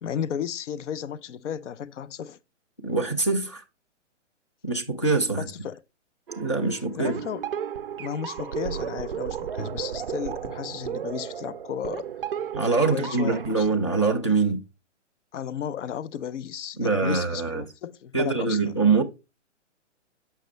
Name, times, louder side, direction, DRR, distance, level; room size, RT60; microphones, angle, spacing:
voice 1, 0.0-2.4 5.4-5.8 7.0-7.5 8.0-12.1 12.8-13.7 15.3-18.7, left 8 dB, 70° left, 0.6 m, -34 dB
voice 2, 2.8-3.6 4.6-5.5 6.4-7.1 12.5-14.6 16.8-17.6 18.1-19.0, right 4 dB, 25° left, 0.4 m, -24 dB
sound 1, 6.3-13.6, right 8 dB, 50° right, 0.4 m, -34 dB
7.8 x 5.7 x 3.1 m
hypercardioid pair, 175°, 37 cm